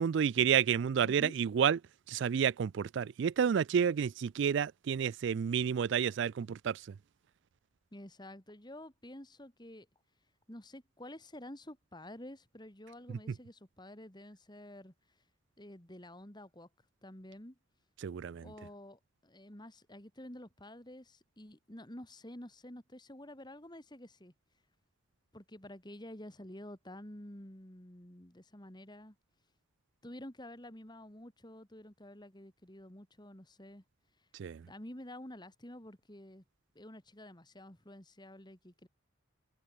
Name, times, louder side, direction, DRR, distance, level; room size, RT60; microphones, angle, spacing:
voice 1, 0.0-1.8 2.1-6.8 18.0-18.4 34.4-34.6, right 7 dB, 60° right, 0.3 m, -30 dB
voice 2, 1.0-1.4 7.9-9.9 10.5-14.9 15.6-16.7 17.0-17.5 18.4-24.3 25.3-29.1 30.0-33.8 34.7-36.4 36.7-38.9, left 1 dB, 20° left, 2.9 m, -50 dB
head